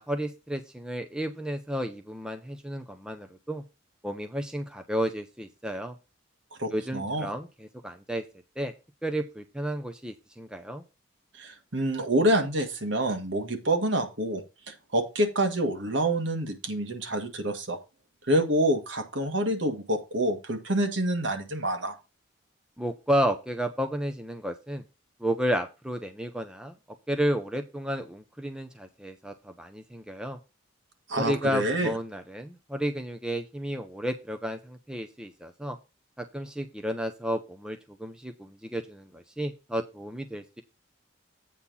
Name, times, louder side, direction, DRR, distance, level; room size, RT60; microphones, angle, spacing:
voice 1, 0.0-3.6 4.0-5.9 6.7-8.2 8.6-8.7 9.0-10.8 22.8-24.8 25.2-26.7 27.1-30.4 31.2-35.8 36.2-40.6, equal, 5° right, 7 dB, 0.7 m, -32 dB
voice 2, 6.6-7.3 11.3-17.8 18.3-21.9 31.1-31.9, right 1 dB, 60° right, 6 dB, 1.8 m, -27 dB
8.5 x 4.3 x 5.5 m, 0.27 s
head